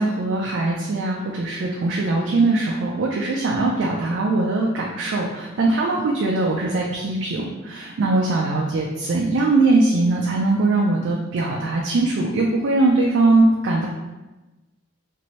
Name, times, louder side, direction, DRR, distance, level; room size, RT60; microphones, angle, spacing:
voice 1, 0.0-13.9, right 2 dB, 55° right, -1 dB, 0.4 m, -21 dB
2.8 x 2.6 x 3.0 m, 1.1 s
head